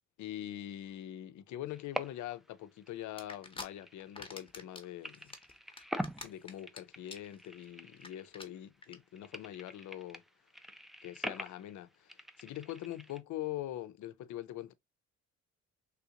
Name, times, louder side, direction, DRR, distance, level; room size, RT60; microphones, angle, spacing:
voice 1, 0.2-5.3 6.2-10.2 11.0-14.7, left 13 dB, 75° left, 0.6 m, -43 dB
sound 1, 1.7-2.5 2.8-4.7 5.0-8.6 8.9-13.2, equal, ahead, 0.4 m, -44 dB
sound 2, 3.2-3.7 4.0-4.8 5.1-6.8 7.1-7.4 7.6-7.7 8.0-8.1 8.3-8.5 8.8-9.0, left 3 dB, 20° left, 0.9 m, -45 dB
3.5 x 2.4 x 2.8 m
cardioid pair, 90°, 30 cm